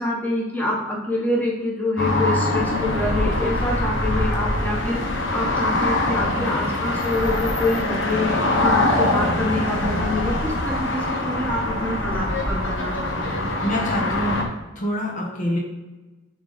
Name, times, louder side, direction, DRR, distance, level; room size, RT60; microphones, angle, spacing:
voice 1, 0.0-13.4, left 2 dB, 10° left, -3 dB, 1.2 m, -26 dB
sound 1, 2.0-14.4, left 1 dB, 60° left, 1.2 m, -23 dB
voice 2, 13.6-14.5 14.7-15.6, equal, 35° left, -1 dB, 1.1 m, -25 dB
7.7 x 4.1 x 5.0 m, 1.2 s
head